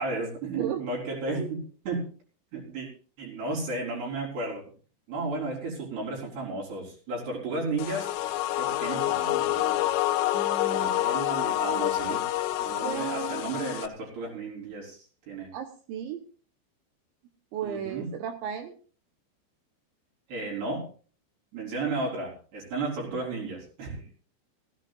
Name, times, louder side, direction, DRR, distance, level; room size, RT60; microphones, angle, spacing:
voice 1, 0.0-2.1 2.5-2.9 3.2-4.6 5.1-8.1 8.6-9.9 10.6-12.3 12.6-15.5 17.6-18.1 20.3-20.9 21.5-24.1, right 3 dB, 60° right, -5 dB, 6.1 m, -33 dB
sound 1, 7.8-13.9, left 14 dB, 80° left, 2.8 m, -27 dB
voice 2, 10.3-11.0 12.8-13.4 15.5-16.2 17.5-18.7, right 9 dB, 75° right, 5 dB, 3.2 m, -35 dB
19.5 x 15.5 x 2.5 m, 0.40 s
omnidirectional pair, 5.5 m